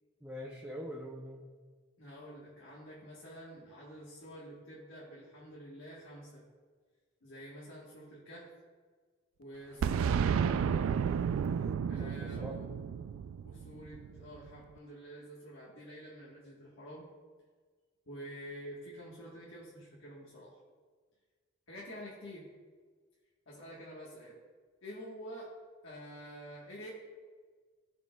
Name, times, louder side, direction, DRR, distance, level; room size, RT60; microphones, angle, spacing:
voice 1, 0.2-1.5 12.0-12.6, equal, 10° right, -3 dB, 0.5 m, -44 dB
voice 2, 2.0-6.4 7.2-8.5 9.4-10.6 11.9-12.7 13.4-17.1 18.1-20.6 21.7-22.5 23.5-24.4 24.8-25.5 25.8-26.9, equal, 75° left, -5 dB, 1.3 m, -48 dB
Boom, 9.8-14.5, right 7 dB, 90° right, 0.3 m, -32 dB
14.5 x 5.1 x 2.3 m, 1.5 s
head